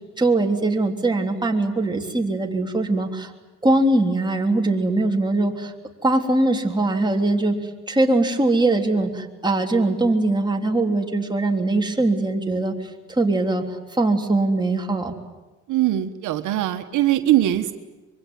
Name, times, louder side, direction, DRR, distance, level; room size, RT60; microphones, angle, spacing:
voice 1, 0.2-3.3 3.6-5.7 6.0-7.6 7.9-12.7 13.1-13.6 13.9-15.1, right 2 dB, 15° right, 2 dB, 3.4 m, -21 dB
voice 2, 15.7-17.7, right 13 dB, 80° right, 7 dB, 1.4 m, -21 dB
25.0 x 23.0 x 9.5 m, 1.1 s
cardioid pair, 90°, 30 cm